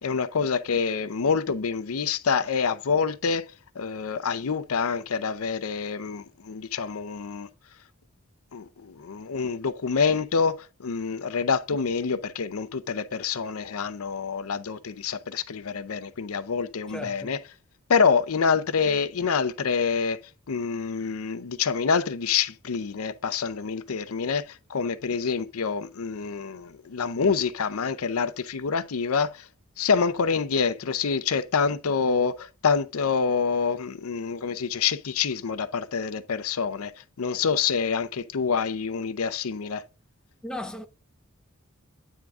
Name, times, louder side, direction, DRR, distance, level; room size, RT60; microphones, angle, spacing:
voice 1, 0.0-3.4 3.8-7.5 8.5-17.4 17.9-20.2 20.5-24.4 24.7-29.4 29.8-36.9 37.2-39.8, left 5 dB, 85° left, 0.6 m, -26 dB
voice 2, 16.9-17.3 40.4-40.9, left 1 dB, 5° left, 0.4 m, -36 dB
9.2 x 3.7 x 3.5 m
head